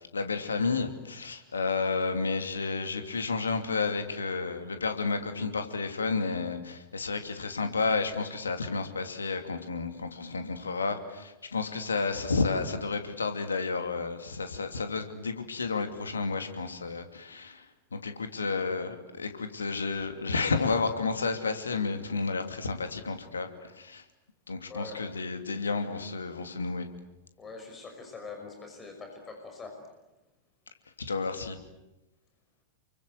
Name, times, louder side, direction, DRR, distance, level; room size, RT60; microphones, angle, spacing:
voice 1, 0.1-17.6 17.9-23.5 23.8-24.0 24.5-26.9 31.1-31.6, left 4 dB, 75° left, 7 dB, 2.8 m, -31 dB
voice 2, 24.7-25.0 27.4-29.7, left 4 dB, 20° left, 3 dB, 5.7 m, -43 dB
29.5 x 24.5 x 8.2 m, 0.98 s
figure-of-eight pair, 90°, 0 cm